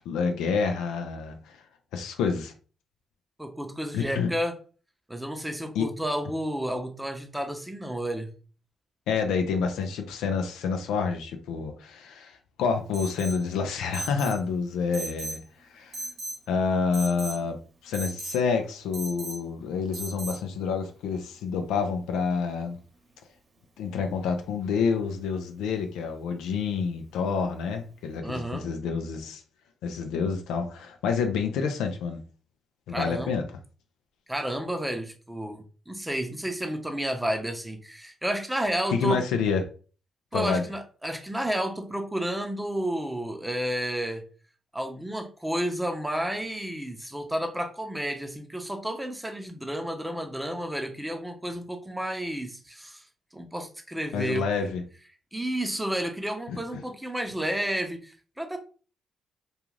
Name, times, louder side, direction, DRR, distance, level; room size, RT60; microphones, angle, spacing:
voice 1, 0.1-1.4 1.9-2.5 3.9-4.3 5.8-5.9 9.1-15.4 15.7-16.0 16.5-17.6 17.8-22.8 23.8-29.4 29.8-32.2 32.9-33.4 38.9-39.6 40.3-40.7 54.1-54.8 56.5-56.8, left 5 dB, 80° left, 6 dB, 0.4 m, -28 dB
voice 2, 3.4-4.5 5.1-8.3 28.2-28.7 32.9-33.4 34.3-39.2 40.3-44.2 44.7-53.0 53.3-54.7 55.3-58.6, right 1 dB, 10° right, 4 dB, 0.7 m, -31 dB
Alarm, 12.9-13.4 13.9-14.4 14.9-15.4 15.9-16.4 16.9-17.4 17.9-18.4 18.9-19.4 19.9-20.4, right 2 dB, 60° right, 0.9 m, -37 dB
2.4 x 2.4 x 3.1 m, 0.38 s
supercardioid pair, 55°, 0 cm